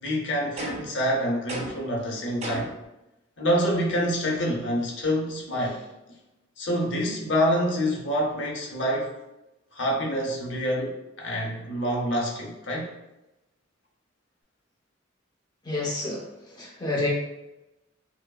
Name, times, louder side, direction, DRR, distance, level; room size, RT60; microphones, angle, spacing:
voice 1, 0.0-2.7 3.4-5.8 6.6-9.1 9.7-12.9, equal, 70° left, -1 dB, 0.8 m, -27 dB
sound 1, 0.6-1.0 1.5-1.9 2.4-2.8, right 1 dB, 35° right, 0.6 m, -34 dB
voice 2, 15.6-17.1, left 2 dB, 20° left, -4 dB, 0.8 m, -29 dB
4.9 x 2.0 x 2.3 m, 0.96 s
head